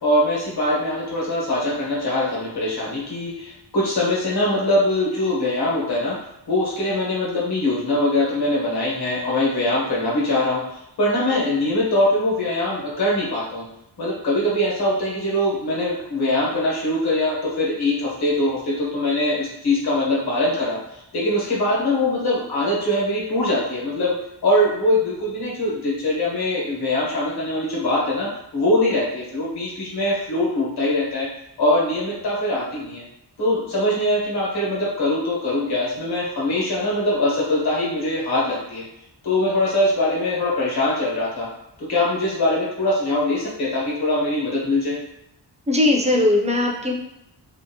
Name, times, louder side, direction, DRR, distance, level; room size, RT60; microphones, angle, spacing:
voice 1, 0.0-6.1 6.5-13.6 14.0-24.1 24.4-31.3 31.6-33.0 33.4-38.8 39.2-41.5 41.8-45.0, left 1 dB, 60° left, -5 dB, 1.2 m, -22 dB
voice 2, 45.7-46.9, left 2 dB, 20° right, 0 dB, 0.3 m, -19 dB
2.7 x 2.4 x 2.7 m, 0.85 s
wide cardioid pair, 165°, 44 cm